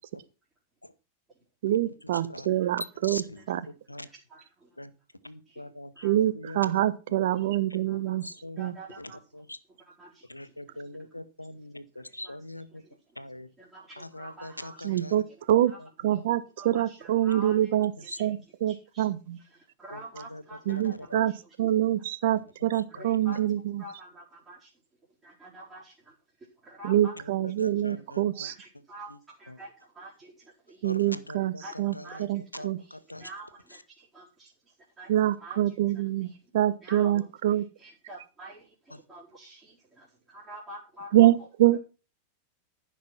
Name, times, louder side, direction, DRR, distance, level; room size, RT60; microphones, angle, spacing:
voice 1, 1.6-3.6 6.0-8.2 8.6-8.7 14.8-15.7 16.0-17.9 18.2-19.4 20.7-21.3 21.6-23.8 26.8-28.5 30.8-32.8 35.1-37.6 41.1-41.8, right 13 dB, 55° right, 14 dB, 1.1 m, -25 dB
voice 2, 3.0-4.1 4.8-4.9 5.2-6.8 8.2-8.6 9.0-9.6 10.2-12.8 13.1-13.5 14.0-15.3 15.8-15.9 16.2-16.3 18.0-18.2 19.9-20.4 20.7-21.2 22.3-22.4 22.7-23.4 27.1-28.5 29.1-29.2 29.5-29.6 30.8-32.2 32.5-33.3 38.9-39.0, left 1 dB, 85° left, 14 dB, 1.0 m, -43 dB
voice 3, 4.3-4.7 5.5-5.6 5.9-6.1 7.3-7.5 7.9-8.2 8.6-9.2 9.8-10.6 11.0-11.1 12.0-12.3 12.7-12.9 13.6-15.0 15.6-15.8 16.1-16.2 16.6-17.7 18.0-18.3 18.7-19.1 19.4-21.5 22.9-23.4 23.8-24.7 25.2-27.1 27.9-28.0 28.3-29.1 29.4-30.9 31.6-32.2 32.5-35.8 36.2-36.4 36.8-37.3 37.8-41.5, right 2 dB, 15° right, -7 dB, 4.4 m, -48 dB
14.5 x 6.0 x 6.0 m, 0.33 s
figure-of-eight pair, 90°, 0 cm